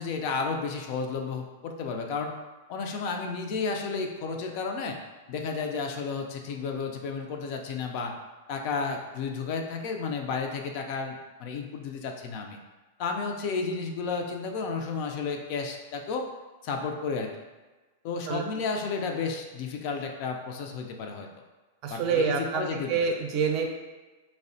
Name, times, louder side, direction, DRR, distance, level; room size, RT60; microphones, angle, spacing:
voice 1, 0.0-2.3 2.7-5.0 5.3-8.1 8.5-12.6 13.0-16.3 16.6-17.3 18.0-21.3 21.9-23.1, left 4 dB, 50° left, 3 dB, 0.4 m, -32 dB
voice 2, 21.8-23.7, right 5 dB, 45° right, 2 dB, 0.4 m, -27 dB
3.3 x 2.1 x 2.6 m, 1.2 s
hypercardioid pair, 120°, 0 cm